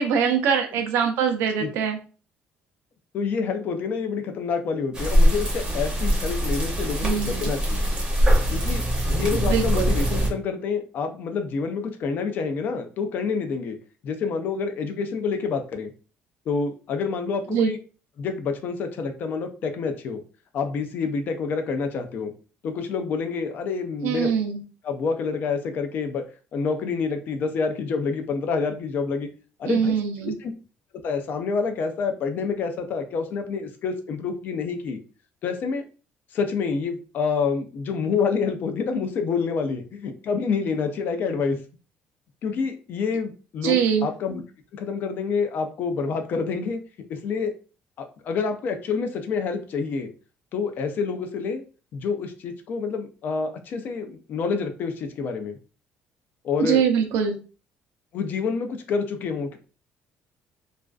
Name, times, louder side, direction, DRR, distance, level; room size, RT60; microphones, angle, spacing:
voice 1, 0.0-2.0 7.0-7.5 9.4-9.9 17.5-17.7 24.0-24.6 29.7-30.4 43.6-44.1 56.6-57.4, right 7 dB, 85° right, 5 dB, 0.5 m, -23 dB
voice 2, 3.1-7.9 8.5-8.8 9.1-13.8 14.0-15.9 16.5-17.8 18.2-20.2 20.5-22.3 22.6-24.3 24.8-26.2 26.5-29.3 29.6-30.0 30.2-30.5 31.0-35.0 35.4-35.9 36.3-41.6 42.4-44.4 44.7-46.8 47.1-47.5 48.0-50.1 50.5-51.6 51.9-55.6 56.4-56.8 58.1-59.6, left 5 dB, 50° left, 6 dB, 0.4 m, -27 dB
sound 1, 4.9-10.3, equal, 20° right, 0.6 m, -22 dB
2.4 x 2.3 x 2.2 m, 0.36 s
cardioid pair, 150°, 4 cm